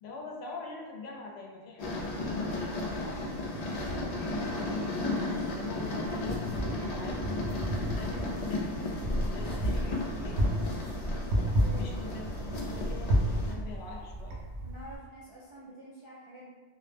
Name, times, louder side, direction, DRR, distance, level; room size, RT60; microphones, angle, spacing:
voice 1, 0.0-4.2 5.6-7.3 7.9-10.4 10.9-14.4, left 4 dB, 80° left, -1 dB, 0.8 m, -44 dB
sound 1, 1.8-13.5, left 2 dB, 55° left, 0.5 m, -35 dB
voice 2, 3.8-4.1 11.2-12.0 14.6-16.5, equal, 50° right, -9 dB, 0.3 m, -48 dB
Wind, 6.0-15.0, equal, 80° right, 0.8 m, -32 dB
2.3 x 2.0 x 3.2 m, 1.4 s
omnidirectional pair, 1.1 m